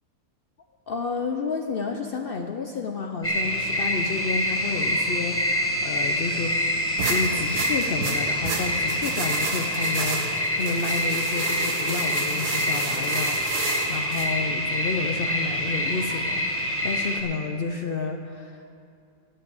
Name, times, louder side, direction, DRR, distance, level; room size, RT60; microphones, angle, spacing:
voice 1, 0.9-6.6 7.1-18.6, left 4 dB, 70° left, 4 dB, 0.5 m, -30 dB
sound 1, 3.2-17.2, equal, 10° left, 0.9 m, -26 dB
sound 2, 7.0-14.3, right 3 dB, 75° right, 2.0 m, -31 dB
11.5 x 7.2 x 8.7 m, 2.5 s
omnidirectional pair, 1.7 m